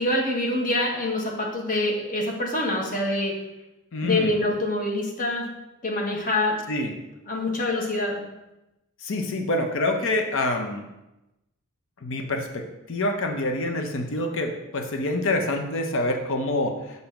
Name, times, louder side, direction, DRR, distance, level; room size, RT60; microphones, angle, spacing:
voice 1, 0.0-3.3 4.0-5.4 5.8-6.6 7.3-8.2, left 1 dB, 40° left, -1 dB, 1.2 m, -25 dB
voice 2, 3.9-4.4 6.7-6.9 9.0-10.8 12.0-16.7, left 2 dB, 60° left, 4 dB, 0.7 m, -26 dB
7.0 x 2.7 x 5.7 m, 0.95 s
head